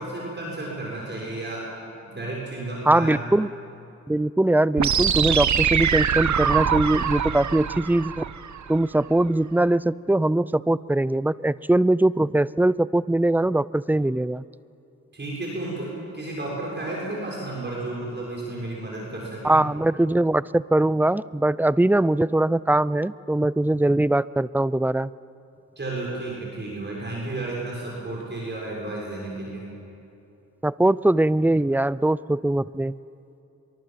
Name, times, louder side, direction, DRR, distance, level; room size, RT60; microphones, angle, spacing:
voice 1, 0.0-1.6 2.0-3.2 15.1-19.6 25.8-29.7, right 2 dB, 35° right, -3 dB, 6.6 m, -32 dB
voice 2, 2.9-3.5 4.1-8.2 8.7-14.4 19.4-25.1 30.6-32.9, right 1 dB, 5° right, 19 dB, 0.5 m, -21 dB
sound 1, 4.8-8.8, right 8 dB, 65° right, 1.2 m, -23 dB
25.5 x 23.0 x 7.6 m, 2.7 s
cardioid pair, 70°, 32 cm